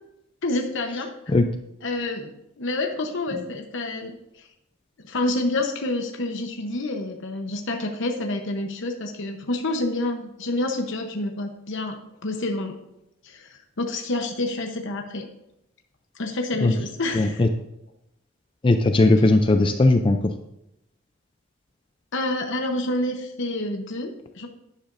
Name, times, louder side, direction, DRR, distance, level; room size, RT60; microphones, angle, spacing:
voice 1, 0.4-1.1 1.8-4.5 5.0-12.8 13.2-15.3 16.2-17.4 22.1-24.5, left 2 dB, 65° left, 3 dB, 1.0 m, -28 dB
voice 2, 17.1-17.5 18.6-20.3, left 2 dB, 25° left, 6 dB, 0.5 m, -18 dB
11.5 x 10.0 x 2.6 m, 0.85 s
head